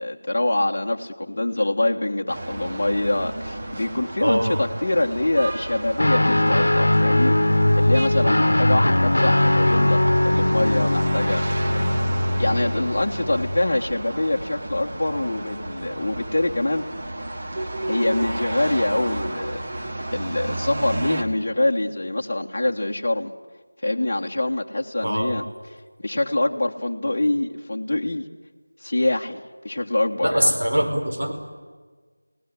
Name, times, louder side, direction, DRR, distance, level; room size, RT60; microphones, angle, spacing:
voice 1, 0.0-11.4 12.4-16.9 17.9-19.6 20.1-23.3 23.8-25.4 26.0-28.3 28.8-30.5, left 1 dB, 40° left, 0 dB, 1.4 m, -24 dB
sound 1, 2.3-21.2, right 1 dB, 25° right, 1.5 m, -32 dB
voice 2, 4.2-4.6 25.0-25.3 30.2-31.3, equal, 70° right, 3 dB, 5.0 m, -22 dB
Guitar, 6.0-13.7, left 1 dB, 70° left, 1.2 m, -20 dB
27.5 x 18.0 x 9.7 m, 1.4 s
figure-of-eight pair, 175°, 0 cm